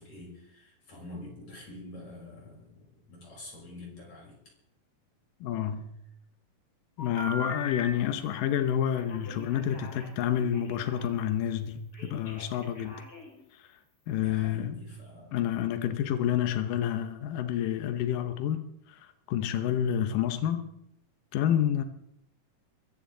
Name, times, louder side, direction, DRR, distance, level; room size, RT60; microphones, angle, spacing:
voice 1, 0.0-4.4 14.2-15.4, left 2 dB, 55° left, 7.4 m, -46 dB
voice 2, 5.4-6.0 7.0-13.0 13.5-13.7 14.1-14.8 15.3-18.6 18.9-20.7 21.3-21.8, left 10 dB, 85° left, 2.6 m, -29 dB
Telephone, 7.0-7.8 8.9-11.1 11.9-13.4, left 2 dB, 30° left, 4.7 m, -41 dB
23.0 x 14.5 x 3.9 m
omnidirectional pair, 3.8 m